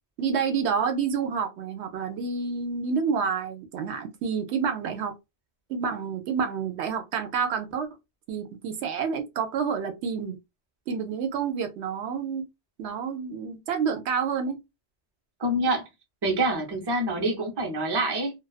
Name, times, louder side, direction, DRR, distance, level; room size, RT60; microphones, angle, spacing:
voice 1, 0.2-5.1 5.7-7.9 8.3-10.4 10.9-12.5 12.8-14.6, right 6 dB, 75° right, 0.8 m, -28 dB
voice 2, 15.4-15.8 16.2-18.3, right 1 dB, 30° right, 0.6 m, -26 dB
2.3 x 2.2 x 2.3 m
omnidirectional pair, 1.2 m